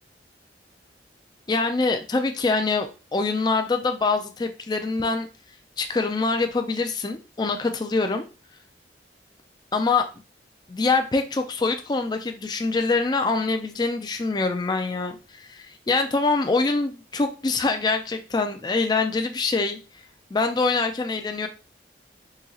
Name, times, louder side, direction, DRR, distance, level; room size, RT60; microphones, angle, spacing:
voice 1, 1.5-5.3 5.8-8.2 9.7-10.1 10.7-19.8 20.3-21.5, left 3 dB, 20° left, 6 dB, 0.3 m, -24 dB
3.8 x 2.8 x 2.8 m, 0.33 s
head